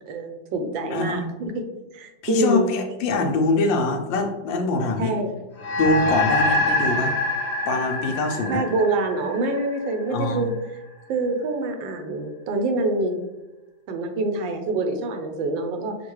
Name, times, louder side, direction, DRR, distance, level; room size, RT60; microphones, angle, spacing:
voice 1, 0.0-1.6 1.9-2.7 5.0-5.3 8.5-10.6 11.1-13.2 13.9-16.0, right 2 dB, 80° right, 5 dB, 1.4 m, -25 dB
voice 2, 0.9-1.2 2.2-5.2 5.8-7.1 7.7-8.6 10.1-10.5, left 3 dB, 80° left, 4 dB, 1.3 m, -24 dB
sound 1, 5.6-10.3, left 1 dB, 50° left, 1.4 m, -25 dB
6.5 x 2.3 x 3.0 m, 1.1 s
omnidirectional pair, 2.1 m